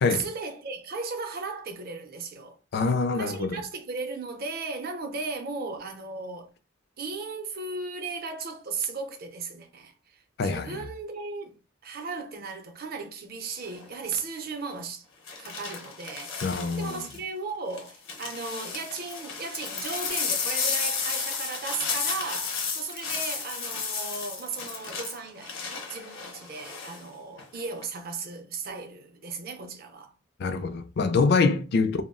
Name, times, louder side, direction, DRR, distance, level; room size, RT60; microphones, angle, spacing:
voice 1, 0.1-2.6 3.2-6.5 7.0-11.6 11.8-15.1 15.4-30.1 31.8-32.0, right 4 dB, 50° right, 0.6 m, -36 dB
voice 2, 2.7-3.6 10.4-10.8 16.4-17.1 30.4-32.0, left 4 dB, 55° left, 0.4 m, -25 dB
sound 1, 13.6-13.9 15.3-17.2 17.7-27.0 27.4-27.8, left 5 dB, 80° left, 0.8 m, -33 dB
2.2 x 2.0 x 3.6 m
head